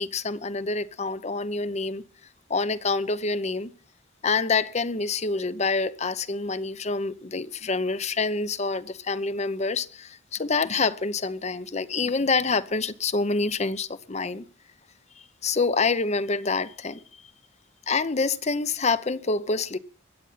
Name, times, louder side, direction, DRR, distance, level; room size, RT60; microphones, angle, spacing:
voice 1, 0.0-2.0 2.5-3.7 4.2-14.4 15.4-17.0 17.9-19.8, left 4 dB, 35° left, 0.8 m, -27 dB
22.5 x 8.9 x 5.7 m
head